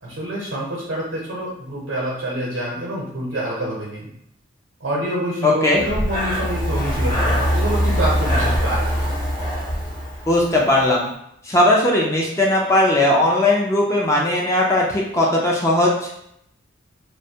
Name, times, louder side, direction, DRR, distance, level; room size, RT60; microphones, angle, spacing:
voice 1, 0.0-4.1 4.8-9.0, right 1 dB, 75° right, -5 dB, 0.7 m, -27 dB
voice 2, 5.4-5.9 10.3-11.1 11.4-16.1, left 1 dB, 15° left, -3 dB, 0.3 m, -18 dB
Breathing, 5.7-10.7, equal, 45° left, 0.9 m, -22 dB
2.6 x 2.1 x 2.7 m, 0.75 s
head